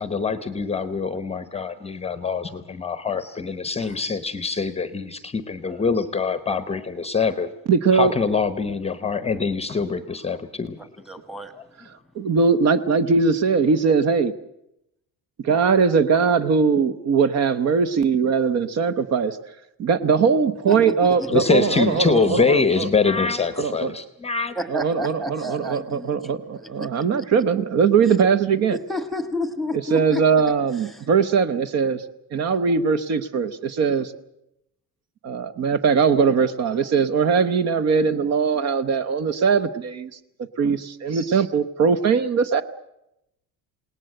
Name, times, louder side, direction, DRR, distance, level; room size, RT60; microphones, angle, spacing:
voice 1, 0.0-7.5 7.9-10.8 21.3-24.6, left 5 dB, 15° left, 13 dB, 0.8 m, -24 dB
voice 2, 7.7-8.1 12.2-14.3 15.4-19.4 19.8-22.9 23.6-23.9 24.7-28.8 29.9-32.0 32.3-34.1 35.2-40.1 40.6-42.6, right 5 dB, 45° right, 13 dB, 0.9 m, -20 dB
voice 3, 10.8-11.5 20.7-21.3 24.5-27.1 28.1-28.2 28.7-30.4 30.7-31.1, left 1 dB, ahead, 11 dB, 1.4 m, -31 dB
28.0 x 18.5 x 7.7 m, 0.85 s
cardioid pair, 175°, 38 cm